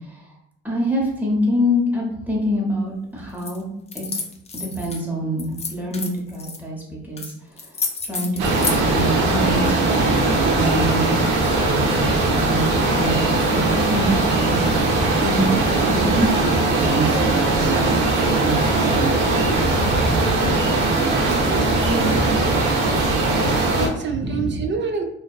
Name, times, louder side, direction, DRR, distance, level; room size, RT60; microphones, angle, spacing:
voice 1, 0.6-3.7 3.9-4.0 4.5-7.3 8.1-10.2 10.6-14.6 15.2-18.7 19.6-20.6 21.9-22.4 24.0-24.7, equal, 5° right, -4 dB, 0.8 m, -26 dB
sound 1, 3.4-3.6 3.9-5.0 5.4-6.6 7.2-7.3 7.6-8.8, left 4 dB, 20° left, 0.4 m, -29 dB
sound 2, 8.4-23.9, right 2 dB, 90° right, 0.6 m, -19 dB
voice 2, 21.0-22.6 23.8-25.0, right 4 dB, 40° right, 3 dB, 0.5 m, -28 dB
2.6 x 2.2 x 2.3 m, 0.77 s
cardioid pair, 90°, 30 cm